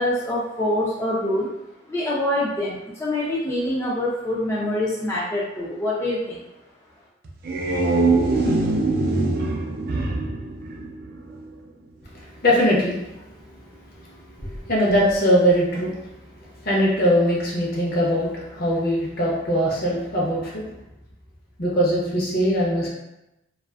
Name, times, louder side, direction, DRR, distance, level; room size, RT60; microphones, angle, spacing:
voice 1, 0.0-1.5 1.9-6.4, left 1 dB, 15° left, -6 dB, 0.3 m, -25 dB
sound 1, 7.3-11.5, right 3 dB, 55° right, 0.4 m, -23 dB
voice 2, 12.4-13.0 14.4-15.9 16.6-20.7 21.6-22.9, equal, 55° left, -4 dB, 0.7 m, -21 dB
2.4 x 2.3 x 2.3 m, 0.90 s
head